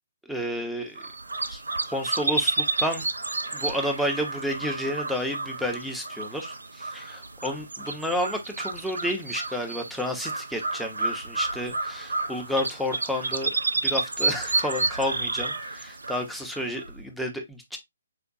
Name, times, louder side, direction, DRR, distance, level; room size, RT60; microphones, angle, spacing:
voice 1, 0.3-1.1 1.5-1.6 1.9-3.0 3.5-13.5 13.8-17.8, equal, ahead, 0.6 m, -31 dB
sound 1, 1.0-17.0, right 3 dB, 70° right, 0.4 m, -31 dB
4.6 x 2.2 x 2.6 m
figure-of-eight pair, 130°, 0 cm